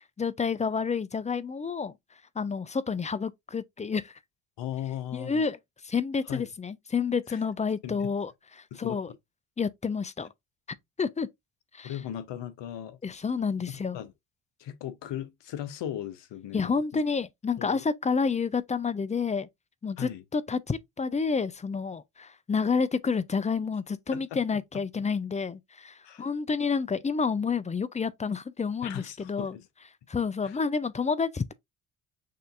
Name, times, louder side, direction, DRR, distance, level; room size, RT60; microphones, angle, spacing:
voice 1, 0.2-1.9 2.4-4.2 5.1-5.6 5.8-9.1 9.6-10.3 11.0-11.3 11.7-12.0 13.0-14.0 16.5-19.5 19.8-29.6 30.1-31.5, left 5 dB, 15° left, 0.4 m, -29 dB
voice 2, 4.6-5.4 6.3-6.5 7.3-7.4 7.8-8.1 8.7-9.0 11.8-13.0 13.9-14.1 14.6-17.0 17.6-17.8 20.0-20.2 24.1-24.4 26.0-26.3 28.8-29.7 30.4-30.6, left 11 dB, 65° left, 1.0 m, -37 dB
6.6 x 2.6 x 2.4 m
hypercardioid pair, 55°, 47 cm